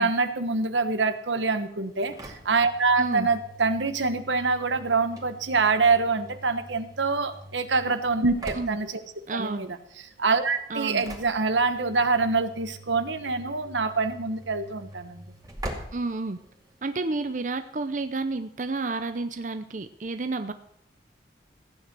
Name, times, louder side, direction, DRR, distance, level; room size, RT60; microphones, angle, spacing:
voice 1, 0.0-9.0 9.3-9.8 10.2-15.3, right 4 dB, 85° right, 10 dB, 1.2 m, -25 dB
Engine / Slam, 1.8-16.9, right 1 dB, 20° right, 2.4 m, -44 dB
voice 2, 3.0-3.3 8.5-8.8 9.3-9.7 10.7-11.0 15.9-16.4 16.8-20.5, right 3 dB, 45° right, 9 dB, 0.6 m, -30 dB
15.0 x 9.4 x 6.1 m, 0.75 s
head